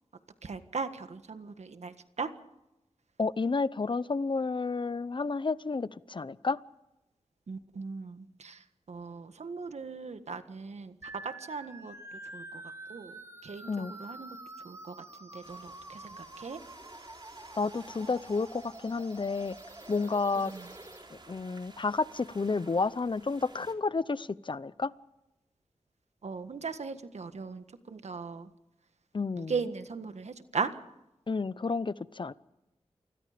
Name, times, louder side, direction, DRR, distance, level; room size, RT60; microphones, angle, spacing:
voice 1, 0.4-2.3 7.5-10.9 11.2-12.6 12.9-14.4 14.6-16.6 20.5-20.7 26.2-28.5 29.3-30.7, right 5 dB, 75° right, 10 dB, 1.6 m, -38 dB
voice 2, 3.2-6.6 13.7-13.9 17.6-19.6 19.9-20.5 21.3-24.9 29.1-29.5 31.3-32.3, left 4 dB, 45° left, 18 dB, 0.7 m, -31 dB
sound 1, 11.0-21.0, right 2 dB, 25° right, 3.0 m, -48 dB
sound 2, 15.4-23.7, right 2 dB, 40° right, 3.6 m, -54 dB
28.5 x 20.5 x 5.1 m, 0.95 s
wide cardioid pair, 60°, 11 cm